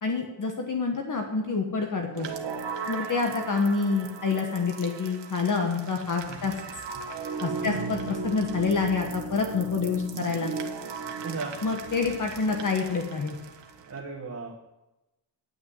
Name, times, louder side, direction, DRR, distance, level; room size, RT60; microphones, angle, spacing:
voice 1, 0.0-2.3 2.9-6.5 7.4-10.5 11.6-13.4, left 4 dB, 45° left, 2 dB, 1.4 m, -27 dB
sound 1, 2.1-14.0, right 5 dB, 70° right, 1.3 m, -37 dB
voice 2, 7.6-7.9 11.2-11.6 13.8-14.6, right 4 dB, 35° right, -3 dB, 1.7 m, -36 dB
10.5 x 6.2 x 7.6 m, 0.98 s
cardioid pair, 95°, 44 cm